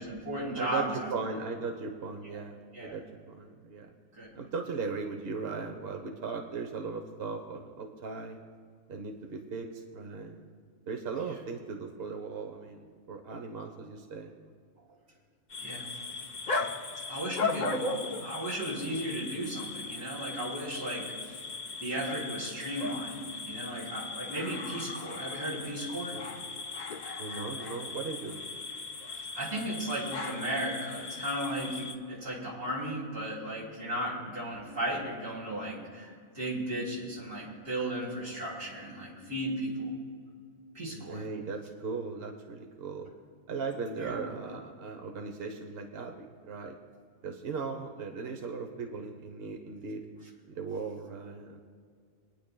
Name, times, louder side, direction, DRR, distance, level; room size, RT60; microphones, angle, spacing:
voice 1, 0.0-1.1 2.7-3.0 4.2-4.3 15.6-15.9 17.1-17.9 18.2-21.1 21.8-26.2 29.3-39.9 40.7-41.2 44.0-44.2, right 1 dB, 70° right, -5 dB, 3.9 m, -35 dB
voice 2, 0.6-3.9 4.3-8.4 8.9-10.4 10.9-14.3 26.1-26.3 27.2-28.4 34.2-34.3 40.9-43.1 43.5-46.8 47.2-50.0 50.5-51.6, right 4 dB, 50° right, 3 dB, 1.0 m, -38 dB
sound 1, 15.5-32.0, left 3 dB, 45° left, 0.7 m, -37 dB
28.5 x 10.0 x 2.2 m, 2.1 s
omnidirectional pair, 1.4 m